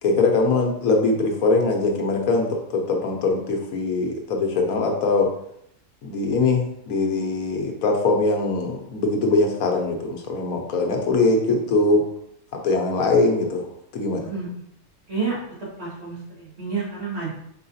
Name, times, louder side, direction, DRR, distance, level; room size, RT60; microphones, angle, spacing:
voice 1, 0.0-5.3 6.0-12.0 12.6-13.7 13.9-14.2, left 3 dB, 70° left, 2 dB, 1.2 m, -22 dB
voice 2, 15.8-17.3, right 5 dB, 45° right, -7 dB, 2.0 m, -29 dB
4.7 x 3.8 x 2.7 m, 0.72 s
omnidirectional pair, 1.6 m